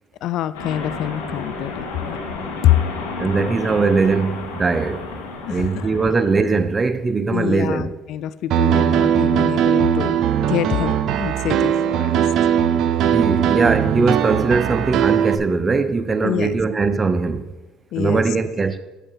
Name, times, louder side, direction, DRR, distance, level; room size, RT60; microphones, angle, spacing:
voice 1, 0.2-2.2 2.6-2.8 5.5-6.1 7.3-10.2 10.5-12.3 13.4-13.5 16.2-16.6 17.9-18.2, left 12 dB, 65° left, 0.3 m, -25 dB
sound 1, 0.5-6.6, left 3 dB, 90° left, 2.2 m, -32 dB
voice 2, 3.2-5.1 5.5-7.9 13.1-17.5 18.0-18.8, right 4 dB, 25° right, 0.7 m, -20 dB
Piano, 8.5-15.3, right 9 dB, 65° right, 0.6 m, -19 dB
8.3 x 7.7 x 5.6 m
supercardioid pair, 80°, 0 cm